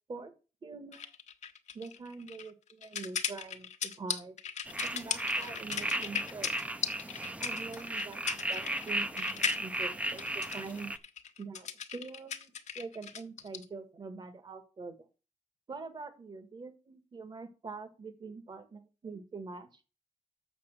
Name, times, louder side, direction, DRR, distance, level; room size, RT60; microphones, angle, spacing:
voice 1, 0.6-1.1 1.7-4.4 4.8-6.5 7.4-10.9 11.4-15.0 15.7-19.8, right 4 dB, 35° right, 10 dB, 1.4 m, -44 dB
sound 1, 0.9-13.7, left 8 dB, 70° left, 1.0 m, -38 dB
sound 2, 4.6-11.0, right 1 dB, 10° right, 0.6 m, -35 dB
6.9 x 6.9 x 6.6 m, 0.34 s
wide cardioid pair, 125°, 12 cm